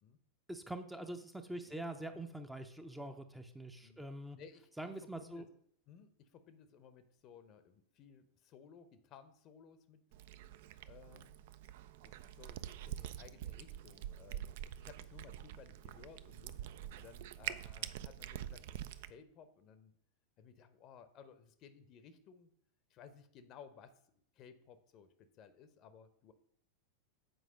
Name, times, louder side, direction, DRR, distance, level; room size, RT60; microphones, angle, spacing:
voice 1, 0.5-4.4 4.8-5.4, right 1 dB, 5° right, 6 dB, 0.6 m, -44 dB
voice 2, 4.3-5.5 5.9-10.0 10.9-11.4 12.0-14.5 14.8-16.6 17.0-19.9 20.4-22.5 22.9-23.9 24.3-26.3, left 7 dB, 35° left, 11 dB, 0.7 m, -58 dB
Cat, 10.1-19.1, right 11 dB, 50° right, 0.3 m, -46 dB
7.9 x 4.8 x 5.1 m, 0.69 s
figure-of-eight pair, 90°, 0 cm